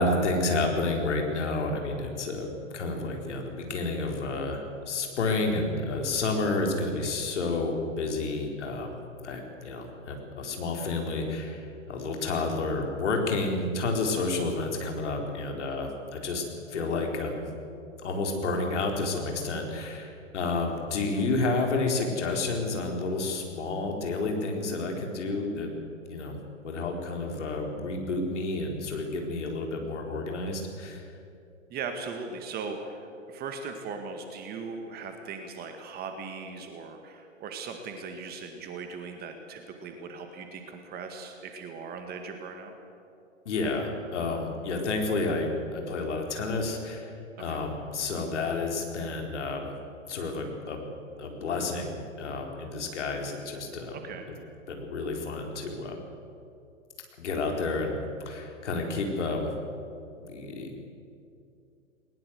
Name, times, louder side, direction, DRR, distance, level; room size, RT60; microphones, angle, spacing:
voice 1, 0.0-2.5 2.7-17.5 18.0-25.7 26.1-26.4 26.6-31.0 43.4-47.1 47.4-49.7 50.1-50.9 51.2-54.0 54.7-56.0 57.2-59.5 60.2-60.9, left 3 dB, 60° left, 2 dB, 4.5 m, -30 dB
voice 2, 31.7-42.7 47.4-47.6 53.9-54.3 58.7-58.8, right 5 dB, 25° right, 5 dB, 1.9 m, -39 dB
20.0 x 20.0 x 7.9 m, 2.6 s
figure-of-eight pair, 115°, 39 cm